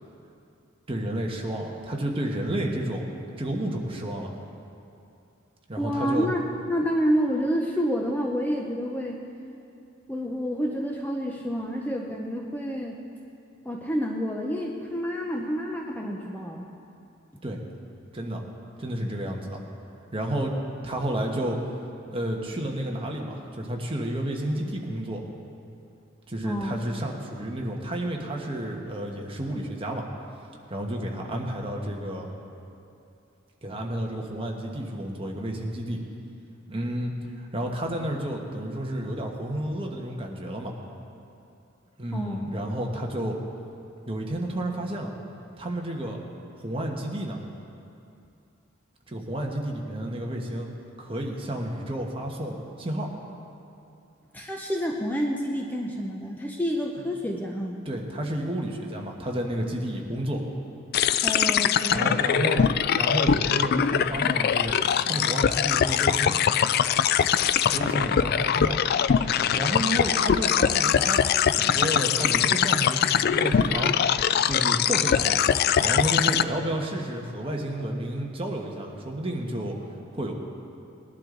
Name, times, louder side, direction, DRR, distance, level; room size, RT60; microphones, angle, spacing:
voice 1, 0.9-3.1 3.4-4.3 5.7-6.3 17.4-17.6 18.1-18.4 18.8-19.6 20.1-20.5 20.8-21.6 22.1-25.2 26.3-30.0 30.7-32.3 33.6-36.0 36.7-40.7 42.0-43.4 44.1-45.1 45.6-46.2 46.6-47.4 49.1-50.7 51.0-53.1 57.8-60.4 61.9-64.7 65.0-66.4 67.6-68.8 69.5-71.2 71.5-74.1 74.4-75.5 75.8-79.8 80.1-80.3, right 1 dB, 25° right, 0 dB, 1.3 m, -31 dB
voice 2, 5.8-9.2 10.1-13.0 13.6-16.7 26.4-26.8 42.1-42.5 54.3-57.8 61.2-62.0, equal, 10° left, -1 dB, 0.7 m, -28 dB
sound 1, 60.9-76.4, left 8 dB, 50° left, 0.3 m, -22 dB
20.0 x 11.5 x 3.9 m, 2.7 s
head